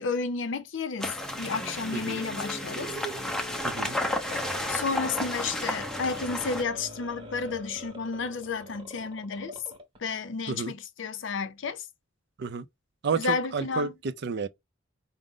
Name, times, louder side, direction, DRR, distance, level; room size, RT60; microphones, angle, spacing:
voice 1, 0.0-2.9 4.3-9.6 10.0-11.8 13.2-13.9, left 4 dB, 65° left, 0.6 m, -32 dB
sound 1, 1.0-6.6, left 1 dB, 5° left, 0.5 m, -32 dB
sound 2, 1.2-10.0, right 1 dB, 25° right, 0.9 m, -43 dB
voice 2, 1.9-2.2 3.6-4.0 10.5-10.7 12.4-12.7 13.0-14.5, right 5 dB, 60° right, 0.4 m, -31 dB
5.0 x 2.0 x 3.6 m
head